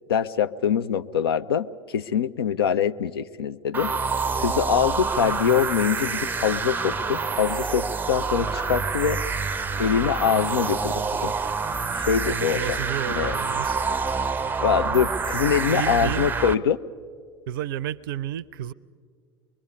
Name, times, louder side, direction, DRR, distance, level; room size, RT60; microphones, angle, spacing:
voice 1, 0.1-3.9 4.4-9.2 9.8-11.3 11.9-12.8 13.1-13.3 14.6-16.8, left 8 dB, 70° left, 0.5 m, -24 dB
sound 1, 3.7-16.5, right 4 dB, 15° right, 0.5 m, -27 dB
voice 2, 12.2-13.9 15.3-16.3 17.5-18.7, right 11 dB, 60° right, 0.5 m, -32 dB
24.5 x 22.0 x 5.4 m
figure-of-eight pair, 75°, 13 cm